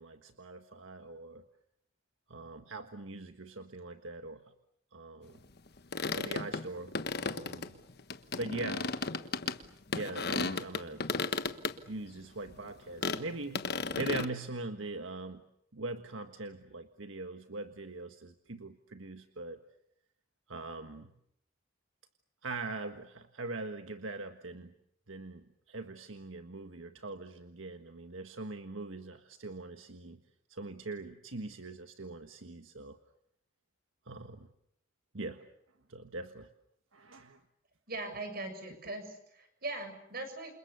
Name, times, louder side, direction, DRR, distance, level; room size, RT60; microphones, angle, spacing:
voice 1, 0.0-1.4 2.3-4.4 4.9-5.4 6.1-7.8 8.3-8.9 9.9-11.1 11.9-13.7 13.9-15.4 15.7-19.6 20.5-21.1 22.4-24.7 25.1-30.2 30.5-33.0 34.1-34.5 35.1-35.5 35.9-36.5 36.9-37.4, right 3 dB, 80° right, 7 dB, 1.6 m, -42 dB
sound 1, 5.7-9.6 9.9-11.7 12.1-12.2 12.5-12.6 13.0-13.2 13.5-14.3, left 4 dB, 55° left, 1.3 m, -34 dB
voice 2, 37.9-40.5, right 2 dB, 50° right, 7 dB, 7.1 m, -40 dB
29.0 x 27.5 x 6.9 m, 0.74 s
head